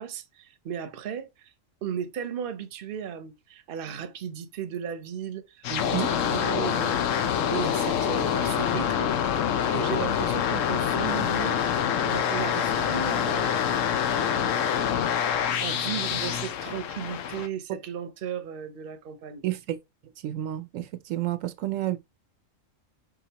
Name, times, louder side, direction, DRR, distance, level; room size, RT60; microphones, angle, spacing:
voice 1, 0.0-1.5 1.8-7.1 7.5-9.1 9.7-11.6 12.0-13.6 14.1-14.5 15.6-19.4, right 8 dB, 55° right, 0.8 m, -35 dB
sound 1, 5.6-17.5, left 8 dB, 80° left, 1.0 m, -26 dB
voice 2, 5.7-6.1 19.4-19.8 20.2-22.0, right 14 dB, 90° right, 1.0 m, -30 dB
4.9 x 3.7 x 2.8 m
omnidirectional pair, 1.3 m